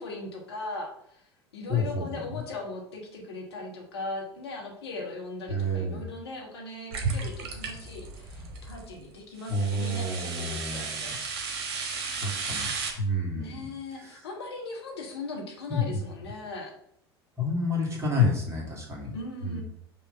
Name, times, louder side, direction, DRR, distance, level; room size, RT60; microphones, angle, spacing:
voice 1, 0.0-11.2 13.3-16.7 19.1-19.6, left 2 dB, 75° left, 0 dB, 1.5 m, -39 dB
voice 2, 1.7-2.3 5.5-6.1 9.5-11.1 12.2-12.7 13.0-13.7 14.0-14.2 15.7-16.0 17.4-19.1 19.4-19.6, left 2 dB, 20° right, -3 dB, 2.4 m, -29 dB
sound 1, 6.9-8.9 9.4-12.9, right 4 dB, 55° right, 1.3 m, -34 dB
5.5 x 3.2 x 5.5 m, 0.70 s
figure-of-eight pair, 75°, 13 cm